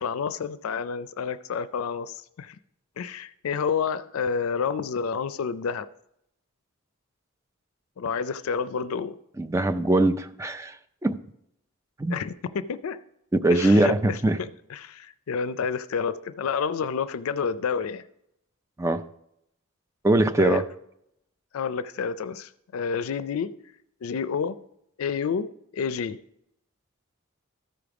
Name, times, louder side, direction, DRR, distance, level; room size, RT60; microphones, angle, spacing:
voice 1, 0.0-2.6 3.0-5.9 8.0-9.2 12.1-13.0 13.5-18.0 20.4-20.6 21.5-23.5 24.0-24.6 25.0-26.2, left 6 dB, 85° left, 0.4 m, -29 dB
voice 2, 9.4-10.8 11.0-11.2 12.0-12.1 13.3-14.4 18.8-19.0 20.0-20.6, right 2 dB, 15° right, 0.4 m, -21 dB
13.0 x 5.2 x 4.8 m
head